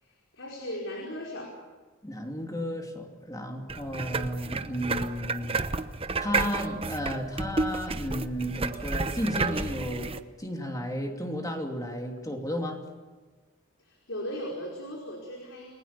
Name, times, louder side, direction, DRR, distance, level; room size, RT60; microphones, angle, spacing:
voice 1, 0.0-1.6 13.8-15.7, equal, 70° left, -1 dB, 5.0 m, -37 dB
voice 2, 2.0-5.6 6.2-12.8, equal, 20° left, 3 dB, 2.9 m, -33 dB
sound 1, 3.7-10.2, right 3 dB, 30° right, 0.9 m, -31 dB
30.0 x 20.5 x 7.1 m, 1.3 s
head